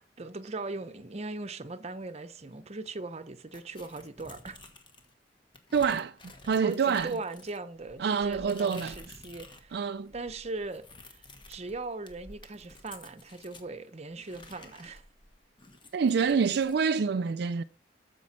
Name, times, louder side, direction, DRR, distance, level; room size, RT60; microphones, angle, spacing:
voice 1, 0.0-4.6 6.6-9.8 10.1-15.0, right 3 dB, 35° right, 0.8 m, -39 dB
sound 1, 3.5-5.1 5.5-9.7 10.0-13.7 14.2-16.8, left 2 dB, 25° left, 1.4 m, -52 dB
voice 2, 5.7-6.2 6.4-7.1 8.0-9.0 9.7-10.1 15.9-17.6, right 6 dB, 60° right, 0.4 m, -26 dB
13.5 x 5.4 x 4.2 m
head